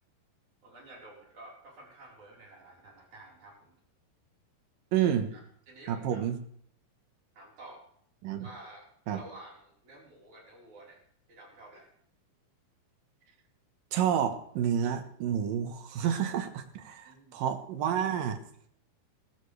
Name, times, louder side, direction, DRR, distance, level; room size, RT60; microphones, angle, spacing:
voice 1, 0.6-3.8 5.3-6.3 7.3-7.8 8.3-11.0 11.3-11.9 17.0-17.4, right 2 dB, 45° right, -3 dB, 5.5 m, -51 dB
voice 2, 4.9-5.3 5.9-6.4 8.2-8.5 9.1-9.2 13.9-18.4, right 9 dB, 65° right, 7 dB, 2.6 m, -29 dB
20.5 x 14.0 x 3.3 m, 0.65 s
omnidirectional pair, 4.8 m